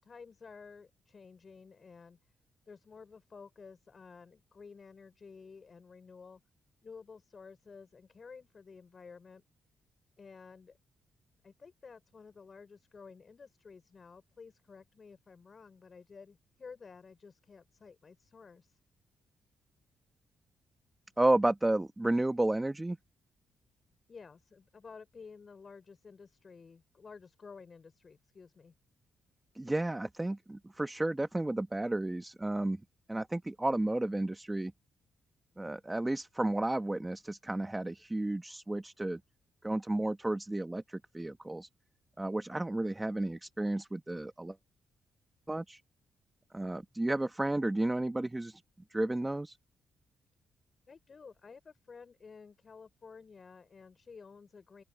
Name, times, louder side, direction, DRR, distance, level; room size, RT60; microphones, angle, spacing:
voice 1, 0.0-2.2 2.7-6.4 6.8-9.4 10.2-10.8 11.4-18.8 24.1-28.7 50.9-54.8, left 5 dB, 40° left, 5.1 m, -52 dB
voice 2, 21.2-23.0 29.5-32.8 33.1-34.7 35.6-39.2 39.6-41.7 42.2-44.6 45.5-45.8 46.5-48.6 48.9-49.6, right 2 dB, 15° right, 1.4 m, -32 dB
open air
cardioid pair, 100°, 0 cm